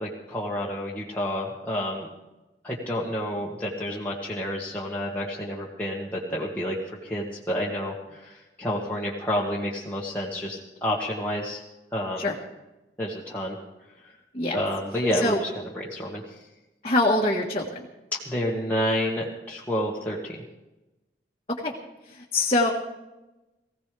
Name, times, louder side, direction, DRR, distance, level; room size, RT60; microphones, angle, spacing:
voice 1, 0.0-2.1 2.6-11.6 11.9-12.3 13.0-13.6 14.0-14.1 14.5-15.5 15.7-16.2 18.3-20.4, equal, 10° left, -5 dB, 1.7 m, -29 dB
voice 2, 16.8-17.9 21.6-21.7 22.1-22.7, left 2 dB, 30° left, -3 dB, 1.5 m, -24 dB
20.5 x 16.0 x 3.4 m, 1.0 s
head